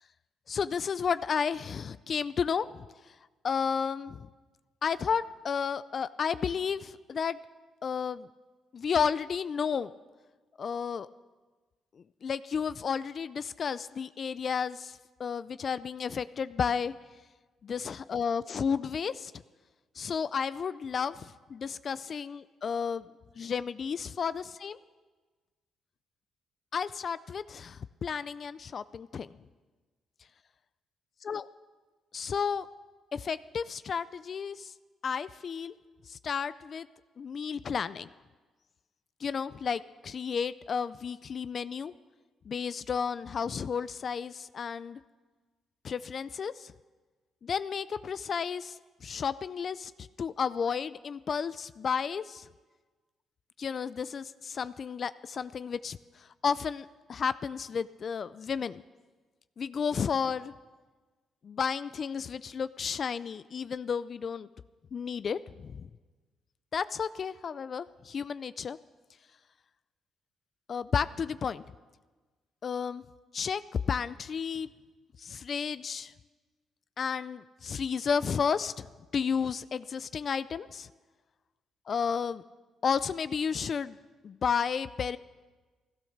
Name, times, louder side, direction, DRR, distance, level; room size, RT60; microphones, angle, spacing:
voice 1, 0.5-3.1 3.4-4.3 4.8-7.4 7.8-8.3 8.7-9.9 10.6-11.1 12.2-16.9 17.6-19.3 20.0-23.1 23.4-24.8 26.7-29.3 31.3-31.4 32.1-32.7 33.1-34.7 35.0-35.7 36.1-36.9 37.2-38.1 39.2-41.9 42.5-45.0 45.8-46.7 47.4-52.5 53.6-58.8 59.6-60.5 61.4-64.5 64.9-65.9 66.7-68.8 70.7-71.6 72.6-73.0 73.3-73.6 73.9-74.7 75.2-76.1 77.0-78.9 79.1-80.9 81.9-82.4 82.8-84.0 84.2-85.2, left 6 dB, 50° left, 15 dB, 0.4 m, -32 dB
15.5 x 13.5 x 6.5 m, 1.3 s
cardioid pair, 90°, 0 cm